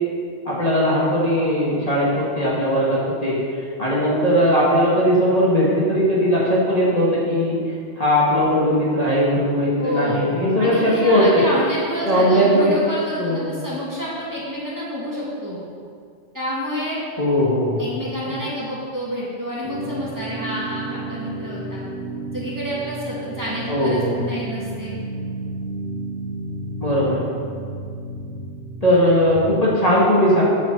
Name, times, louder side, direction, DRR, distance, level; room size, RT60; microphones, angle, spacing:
voice 1, 0.5-7.6 8.0-11.4 12.0-12.8 13.2-13.6 17.2-17.9 18.3-18.4 23.7-24.3 26.8-27.3 28.8-30.4, equal, 30° left, -7 dB, 2.2 m, -19 dB
voice 2, 9.8-10.2 10.6-15.6 16.3-17.0 17.8-21.8 22.3-24.9, equal, 15° right, -8 dB, 2.3 m, -28 dB
sound 1, 19.6-29.6, right 2 dB, 10° left, 1.2 m, -32 dB
8.2 x 6.8 x 6.9 m, 2.2 s
omnidirectional pair, 1.2 m